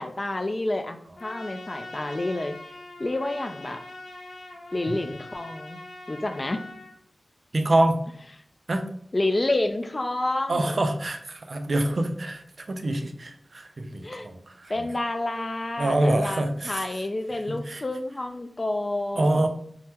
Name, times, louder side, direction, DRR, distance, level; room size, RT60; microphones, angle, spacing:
voice 1, 0.0-2.6 3.0-3.8 4.7-5.8 6.1-6.6 9.1-10.8 14.0-14.3 14.7-19.5, left 2 dB, 35° left, 7 dB, 0.3 m, -29 dB
Trumpet, 1.2-6.9, left 2 dB, 85° left, 0.8 m, -42 dB
voice 2, 7.5-8.0 8.7-8.8 10.5-14.7 15.8-16.9 17.5-17.8 19.2-19.5, right 1 dB, 55° right, 6 dB, 0.4 m, -25 dB
3.5 x 2.1 x 2.8 m, 0.64 s
wide cardioid pair, 85°, 0 cm